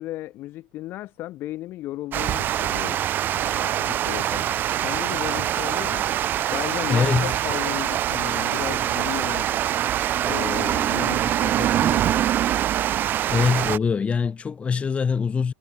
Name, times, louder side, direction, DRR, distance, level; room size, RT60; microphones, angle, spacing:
voice 1, 0.0-3.0 3.3-6.1 6.5-9.6 10.2-12.3, left 15 dB, 45° left, 5.1 m, -35 dB
Water, 2.1-13.8, right 11 dB, 40° right, 1.4 m, -24 dB
voice 2, 6.9-7.3 13.3-15.5, left 6 dB, 25° left, 5.9 m, -23 dB
hypercardioid pair, 90°, 5 cm